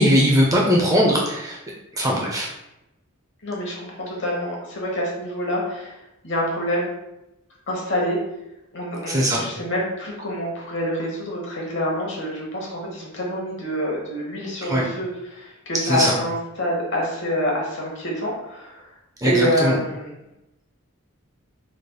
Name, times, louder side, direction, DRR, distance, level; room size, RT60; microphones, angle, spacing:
voice 1, 0.0-1.6 1.9-2.5 9.1-9.4 14.7-14.9 15.8-16.1 19.2-19.8, equal, 15° right, -2 dB, 0.4 m, -19 dB
voice 2, 3.4-6.0 6.2-6.9 7.7-8.2 8.7-18.9 19.2-20.1, equal, 55° left, -3 dB, 1.0 m, -26 dB
3.9 x 3.3 x 2.2 m, 0.91 s
head